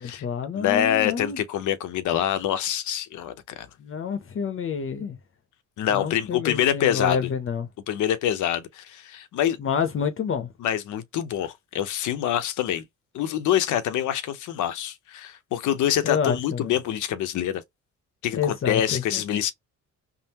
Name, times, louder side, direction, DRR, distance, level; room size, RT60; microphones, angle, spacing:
voice 1, 0.0-1.4 3.8-5.2 5.9-7.7 9.6-10.5 16.0-16.7 18.3-19.2, left 6 dB, 45° left, 0.7 m, -28 dB
voice 2, 0.5-3.7 5.8-7.2 7.9-9.6 10.6-12.8 13.1-17.6 18.2-19.5, left 10 dB, 80° left, 0.7 m, -25 dB
3.6 x 2.0 x 2.8 m
cardioid pair, 90°, 30 cm